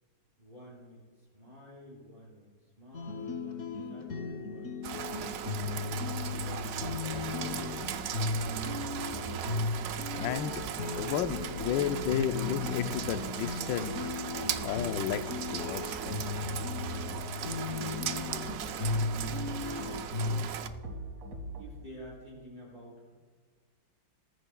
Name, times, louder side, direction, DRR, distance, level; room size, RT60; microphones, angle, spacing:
voice 1, 0.4-2.5 2.8-7.6 8.4-8.9 17.6-18.1 18.6-19.1 19.7-20.5 21.5-23.1, equal, 25° right, -8 dB, 4.6 m, -50 dB
sound 1, 2.9-20.5, left 4 dB, 50° left, 1.0 m, -36 dB
Rain, 4.8-20.7, right 9 dB, 90° right, 0.7 m, -38 dB
sound 2, 6.1-21.6, right 1 dB, 50° right, 2.0 m, -46 dB
voice 2, 10.1-10.6 11.0-14.2 14.6-16.2, left 9 dB, 75° left, 10 dB, 1.3 m, -33 dB
19.5 x 13.5 x 2.3 m, 1.5 s
omnidirectional pair, 2.1 m